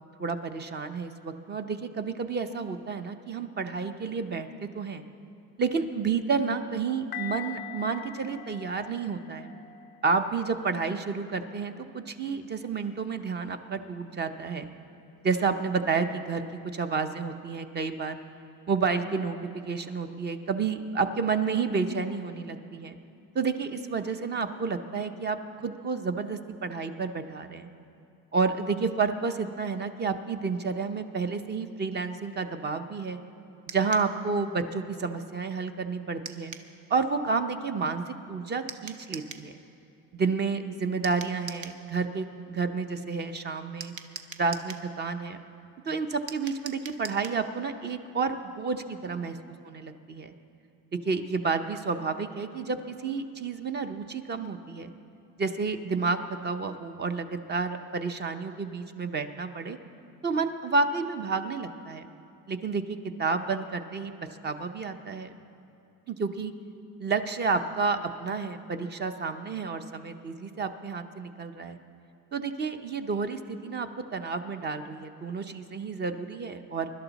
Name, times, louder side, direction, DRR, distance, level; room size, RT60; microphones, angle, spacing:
voice 1, 0.2-5.0 5.6-9.5 10.0-14.7 15.2-18.2 18.7-23.0 23.3-27.7 28.3-33.2 33.7-36.5 36.9-39.5 40.1-43.9 44.4-45.4 45.9-49.3 49.7-50.3 51.0-54.9 55.4-59.8 60.2-62.1 62.5-64.1 64.4-65.3 66.1-66.5 67.0-71.8 72.3-76.9, right 4 dB, 30° right, 8 dB, 0.7 m, -30 dB
sound 1, 7.1-12.0 12.7-12.9, left 10 dB, 30° left, 0.4 m, -44 dB
sound 2, 33.7-34.1 36.2-36.7 38.7-39.5 41.0-41.8 43.8-44.9 46.3-47.4, right 7 dB, 55° right, 0.9 m, -42 dB
24.0 x 12.0 x 4.1 m, 2.6 s
cardioid pair, 145°, 35 cm